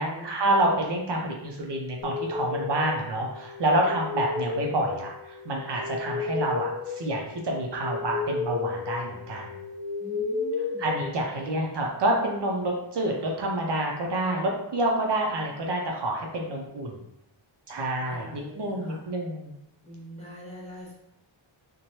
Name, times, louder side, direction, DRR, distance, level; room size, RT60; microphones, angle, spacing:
voice 1, 0.0-9.5 10.8-17.0 17.7-19.5, right 1 dB, 60° right, 0 dB, 0.5 m, -28 dB
sound 1, 2.0-11.7, left 4 dB, 85° left, 0.6 m, -33 dB
voice 2, 10.0-10.8 18.0-19.0 19.8-20.9, equal, 15° left, -7 dB, 0.8 m, -44 dB
3.0 x 2.2 x 2.7 m, 0.82 s
wide cardioid pair, 160°, 49 cm